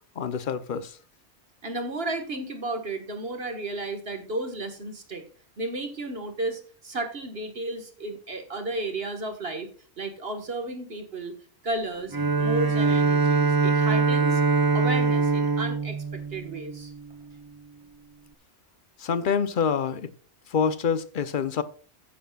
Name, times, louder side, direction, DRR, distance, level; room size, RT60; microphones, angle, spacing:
voice 1, 0.2-1.0 19.0-20.1 20.5-21.6, left 6 dB, 50° left, 0.9 m, -26 dB
voice 2, 1.6-5.2 5.6-9.7 10.0-11.3 11.6-14.4 14.7-16.9, right 2 dB, 55° right, 1.8 m, -33 dB
Bowed string instrument, 12.1-17.2, right 4 dB, 30° right, 0.4 m, -23 dB
15.0 x 8.6 x 2.4 m
omnidirectional pair, 1.2 m